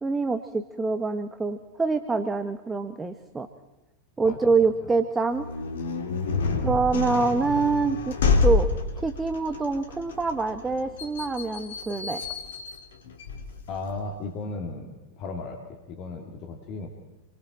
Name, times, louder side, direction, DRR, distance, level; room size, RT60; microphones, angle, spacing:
voice 1, 0.0-3.5 4.2-5.5 6.6-8.7 9.0-12.2, right 4 dB, 10° right, 9 dB, 1.2 m, -25 dB
voice 2, 4.2-4.5 6.4-6.8 13.7-14.9 15.2-16.9, left 3 dB, 40° left, 3 dB, 2.6 m, -35 dB
sound 1, 5.3-14.0, left 4 dB, 60° left, 2.6 m, -28 dB
28.0 x 23.0 x 4.3 m, 1.1 s
figure-of-eight pair, 90°, 0 cm